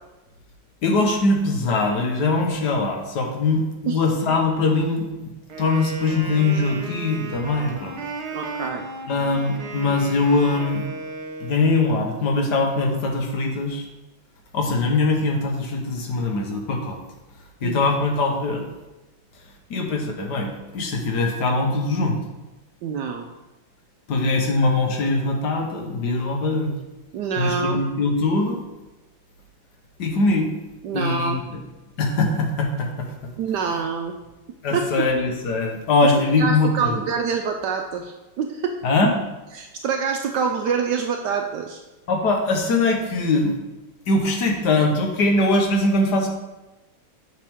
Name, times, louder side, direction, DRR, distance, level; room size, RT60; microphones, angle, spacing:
voice 1, 0.8-5.3 5.6-8.0 9.1-10.8 11.4-13.9 14.5-17.0 17.6-18.7 19.7-22.2 24.1-26.7 27.4-28.6 30.0-30.5 30.9-31.6 32.0-33.1 34.6-37.0 38.8-39.1 42.1-43.5 44.1-46.3, left 3 dB, 60° left, 2 dB, 1.6 m, -22 dB
Wind instrument woodwind instrument, 5.5-11.8, right 3 dB, 55° right, 1.5 m, -35 dB
voice 2, 8.3-8.9 17.6-17.8 22.8-23.3 27.1-27.8 30.8-31.4 33.4-34.1 34.7-35.1 36.0-36.1 36.4-38.8 39.5-41.8, right 6 dB, 75° right, 4 dB, 1.1 m, -26 dB
8.2 x 6.2 x 3.6 m, 1.1 s
omnidirectional pair, 2.1 m